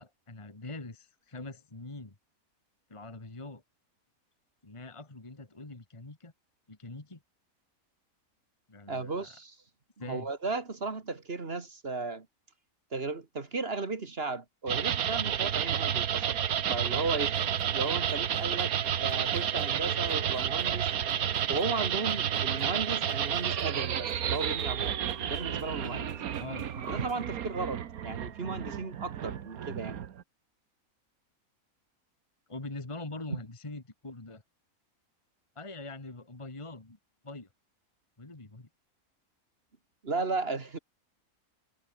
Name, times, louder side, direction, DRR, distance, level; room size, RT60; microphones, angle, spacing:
voice 1, 0.0-2.2 2.9-3.6 4.6-6.3 6.7-7.2 8.7-9.4 10.0-10.3 26.4-26.7 32.5-34.4 35.6-37.0 37.2-37.5 38.2-38.7, left 2 dB, 20° left, 1.9 m, -43 dB
voice 2, 8.9-9.6 10.1-12.3 12.9-16.4 16.7-17.5 17.7-18.7 19.0-20.9 21.5-25.0 25.3-26.2 26.8-30.0 33.3-33.4 40.0-40.8, right 3 dB, 45° right, 2.1 m, -35 dB
sound 1, 14.7-30.2, right 9 dB, 85° right, 1.5 m, -31 dB
sound 2, 17.2-27.3, right 1 dB, 25° right, 5.2 m, -51 dB
omnidirectional pair, 1.5 m